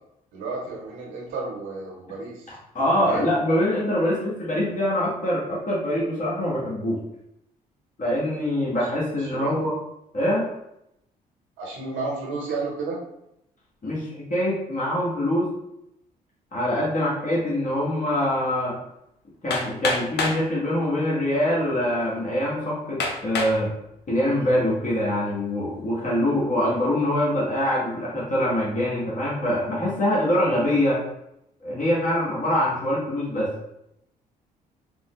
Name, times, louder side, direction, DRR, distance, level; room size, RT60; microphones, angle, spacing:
voice 1, 0.3-2.5 2.9-3.2 9.2-9.6 11.6-13.0, right 3 dB, 65° right, -3 dB, 1.1 m, -32 dB
voice 2, 2.5-7.0 8.0-9.7 10.1-10.5 13.8-15.5 16.5-18.7 19.4-23.7 24.1-31.0 31.6-33.5, left 1 dB, 40° left, -6 dB, 1.4 m, -24 dB
Hammer, 19.5-20.4 21.3-21.4 22.0-22.1 23.0-23.6 24.2-24.6, left 3 dB, 55° left, 0.7 m, -27 dB
3.8 x 2.1 x 3.0 m, 0.80 s
hypercardioid pair, 55°, 21 cm